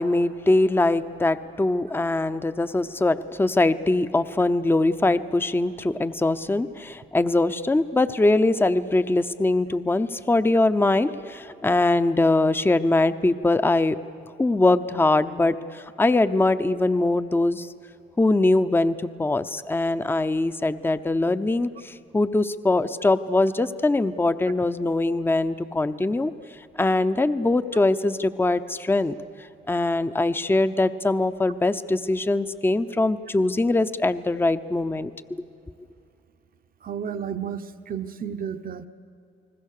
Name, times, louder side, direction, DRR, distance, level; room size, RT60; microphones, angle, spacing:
voice 1, 0.0-14.0 14.4-17.7 18.2-26.3 26.8-29.2 29.7-35.1, left 2 dB, 10° left, 12 dB, 0.7 m, -22 dB
voice 2, 36.8-38.9, right 8 dB, 45° right, 9 dB, 0.9 m, -32 dB
30.0 x 20.0 x 6.7 m, 2.6 s
cardioid pair, 90°, 20 cm